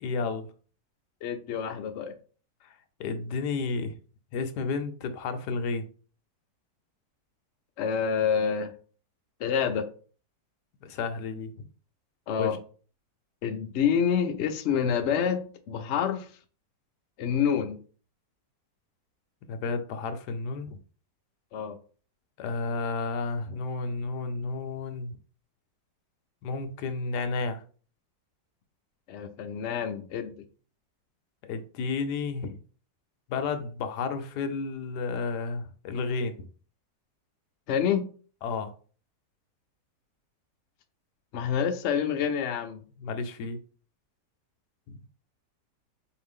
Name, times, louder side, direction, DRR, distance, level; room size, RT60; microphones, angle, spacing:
voice 1, 0.0-0.5 3.0-3.9 4.3-5.9 10.8-11.5 12.4-12.5 19.5-20.7 22.4-25.2 26.4-27.6 31.4-32.6 33.3-36.4 38.4-38.7 43.0-43.6 44.9-45.0, left 4 dB, 70° left, 1.1 m, -31 dB
voice 2, 1.2-2.1 7.8-8.7 9.4-9.9 12.3-12.6 13.4-16.3 17.2-17.8 21.5-21.8 29.1-30.3 37.7-38.1 41.3-42.8, left 7 dB, 90° left, 0.6 m, -27 dB
4.5 x 2.6 x 3.6 m
omnidirectional pair, 1.9 m